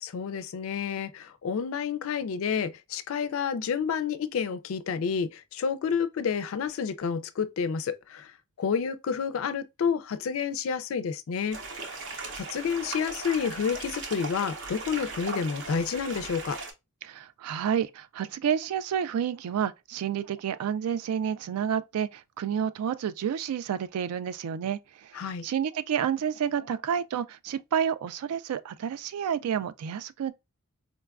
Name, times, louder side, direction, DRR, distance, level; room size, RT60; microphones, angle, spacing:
voice 1, 0.0-8.3 8.6-11.6 12.3-16.6 25.1-25.4, left 6 dB, 65° left, 0.3 m, -29 dB
sound 1, 11.5-16.7, right 3 dB, 55° right, 0.6 m, -38 dB
voice 2, 17.0-25.1 25.4-30.3, right 8 dB, 85° right, 0.3 m, -30 dB
3.9 x 2.2 x 2.3 m
head